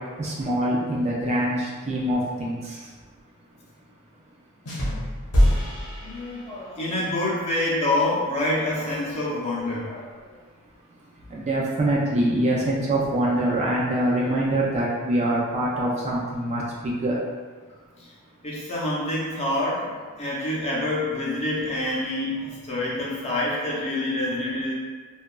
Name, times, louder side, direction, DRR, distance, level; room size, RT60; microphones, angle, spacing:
voice 1, 0.2-2.8 11.3-17.2, right 1 dB, 30° right, -5 dB, 0.3 m, -24 dB
sound 1, 4.7-6.9, equal, 90° left, 0.8 m, -24 dB
voice 2, 6.0-10.0 18.4-24.7, left 1 dB, 30° left, -6 dB, 0.6 m, -27 dB
2.7 x 2.3 x 2.3 m, 1.5 s
head